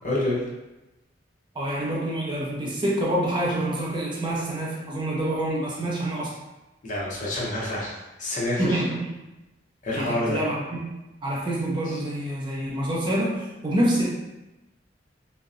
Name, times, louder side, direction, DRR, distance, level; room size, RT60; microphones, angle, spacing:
voice 1, 0.0-0.4 6.8-8.8 9.8-10.4, left 1 dB, 45° left, -5 dB, 0.6 m, -27 dB
voice 2, 1.6-6.4 8.6-9.0 10.0-10.8 11.2-14.0, right 1 dB, 25° right, -4 dB, 0.4 m, -26 dB
2.6 x 2.0 x 2.4 m, 1.0 s
head